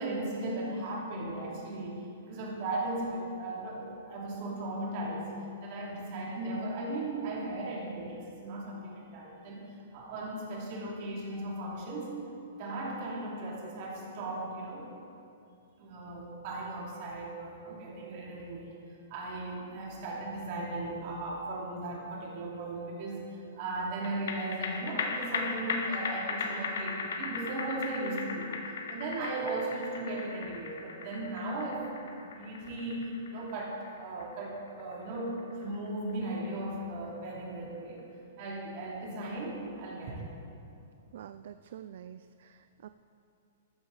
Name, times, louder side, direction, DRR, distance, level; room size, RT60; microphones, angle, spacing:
voice 1, 0.0-12.2 12.6-14.9 15.8-18.7 19.1-23.2 23.5-28.6 28.9-38.1 38.4-40.2, right 2 dB, 35° right, -3 dB, 2.7 m, -37 dB
sound 1, 24.0-36.7 37.0-37.1, left 4 dB, 65° left, 1.4 m, -37 dB
voice 2, 41.1-42.9, right 10 dB, 55° right, 11 dB, 0.3 m, -47 dB
13.5 x 13.0 x 4.1 m, 2.6 s
hypercardioid pair, 170°, 0 cm